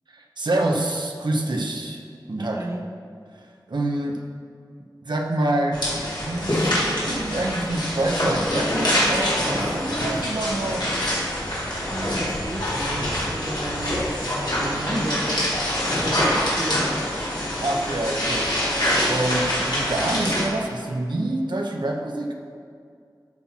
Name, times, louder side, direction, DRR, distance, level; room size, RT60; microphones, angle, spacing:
voice 1, 0.1-2.0 2.3-2.7 3.3-4.3 5.0-5.8 6.2-11.1 17.6-18.6 19.1-22.3, right 1 dB, 75° right, 1 dB, 0.9 m, -27 dB
voice 2, 2.4-2.8 11.9-15.5 16.0-16.9, right 1 dB, 35° right, 3 dB, 0.8 m, -32 dB
sound 1, 5.7-20.4, equal, 70° left, 2.5 m, -25 dB
13.0 x 5.9 x 4.2 m, 2.3 s
wide cardioid pair, 60°, 8 cm